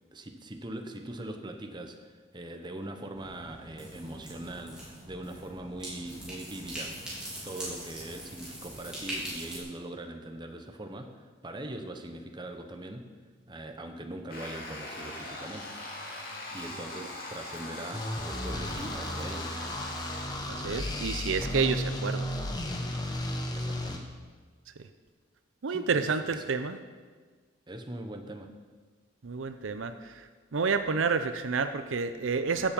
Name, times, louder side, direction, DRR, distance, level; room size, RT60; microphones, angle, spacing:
voice 1, 0.1-7.1 7.4-13.1 13.5-15.7 16.5-19.7 23.5-24.1 25.7-26.4 27.7-28.5, right 1 dB, 20° right, 5 dB, 0.9 m, -41 dB
sound 1, 3.1-9.6, right 1 dB, 5° right, 3.6 m, -41 dB
sound 2, 14.3-20.3, left 2 dB, 45° left, 2.4 m, -41 dB
sound 3, 17.9-24.0, left 1 dB, 20° left, 1.0 m, -34 dB
voice 2, 20.5-22.3 25.6-26.8 29.2-32.7, right 5 dB, 75° right, 10 dB, 0.6 m, -29 dB
15.5 x 7.3 x 5.3 m, 1.4 s
head